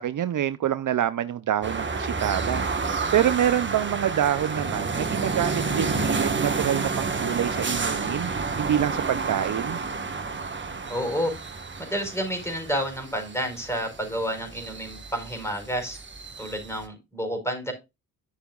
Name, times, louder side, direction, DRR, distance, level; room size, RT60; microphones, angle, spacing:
voice 1, 0.0-9.8, right 10 dB, 55° right, 0.6 m, -26 dB
sound 1, 1.6-16.8, right 4 dB, 30° right, 1.4 m, -30 dB
voice 2, 10.9-11.3 11.8-16.0 16.4-17.7, equal, 5° left, 4.8 m, -30 dB
11.5 x 6.8 x 2.4 m
cardioid pair, 65°, 36 cm